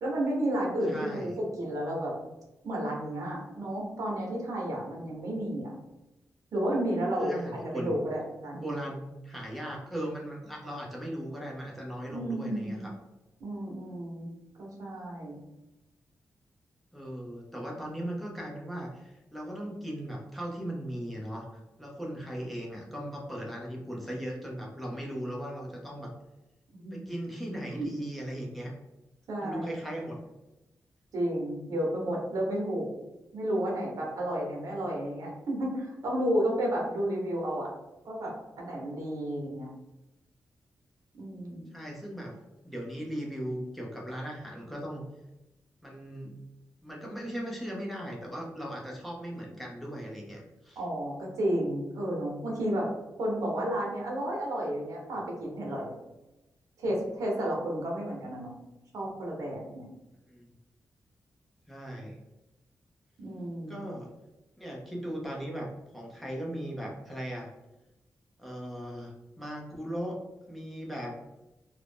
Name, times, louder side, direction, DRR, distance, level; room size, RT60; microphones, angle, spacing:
voice 1, 0.0-2.1 2.6-5.7 6.5-7.3 7.7-8.7 12.1-12.8 13.4-14.2 14.6-15.4 26.8-27.0 27.8-27.9 29.3-29.7 31.1-32.9 33.3-37.7 38.0-39.7 41.1-41.7 50.8-52.9 53.2-55.9 56.8-58.5 58.9-59.9 63.2-63.8, right 1 dB, 75° right, -2 dB, 0.9 m, -32 dB
voice 2, 0.9-1.3 7.2-7.9 8.5-13.0 16.9-26.1 26.9-28.7 29.4-30.2 41.7-42.4 42.6-45.0 45.8-46.3 46.8-50.8 60.3-60.5 61.7-62.2 63.7-64.1 64.6-67.5 68.4-70.2 70.5-71.2, equal, ahead, -3 dB, 0.6 m, -38 dB
2.5 x 2.0 x 3.4 m, 0.99 s
wide cardioid pair, 125°, 6 cm